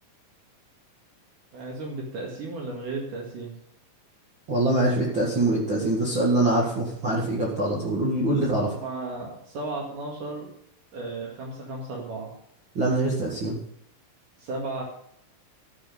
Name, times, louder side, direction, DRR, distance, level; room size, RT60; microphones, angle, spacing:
voice 1, 1.5-3.5 8.6-10.5 10.9-12.3 14.4-14.8, right 2 dB, 65° right, -2 dB, 3.6 m, -34 dB
voice 2, 4.5-8.7 12.8-13.6, right 1 dB, 40° right, -4 dB, 2.4 m, -24 dB
13.5 x 6.9 x 6.8 m, 0.72 s
omnidirectional pair, 4.0 m